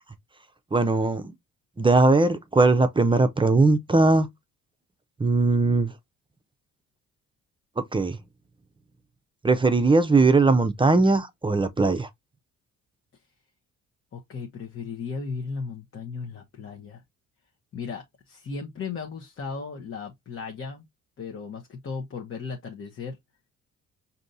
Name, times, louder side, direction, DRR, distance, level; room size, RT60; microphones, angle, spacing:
voice 1, 0.7-1.3 1.8-4.3 5.2-5.9 7.8-8.2 9.4-12.1, right 3 dB, 15° right, 0.6 m, -20 dB
voice 2, 14.1-17.0 17.7-20.9 21.2-23.2, left 5 dB, 45° left, 1.0 m, -36 dB
5.1 x 2.8 x 2.6 m
cardioid pair, 90°, 30 cm